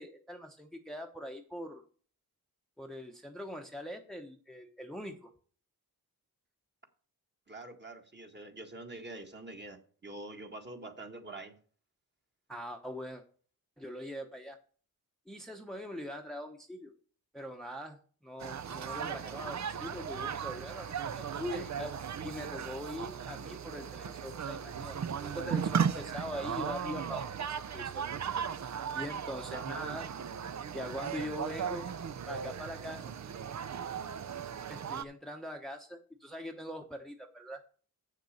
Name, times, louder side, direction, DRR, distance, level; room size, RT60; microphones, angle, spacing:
voice 1, 0.0-1.8 2.8-5.3 12.5-13.2 13.8-14.6 15.3-16.9 17.3-21.9 22.2-28.0 28.9-30.0 30.7-31.9 32.3-33.1 34.7-37.6, equal, ahead, 4 dB, 0.9 m, -42 dB
voice 2, 7.5-11.6 29.5-29.8, right 2 dB, 30° right, 4 dB, 1.6 m, -45 dB
sound 1, 18.4-35.0, right 7 dB, 45° right, 0.6 m, -37 dB
7.4 x 6.7 x 6.5 m, 0.43 s
cardioid pair, 75°, 38 cm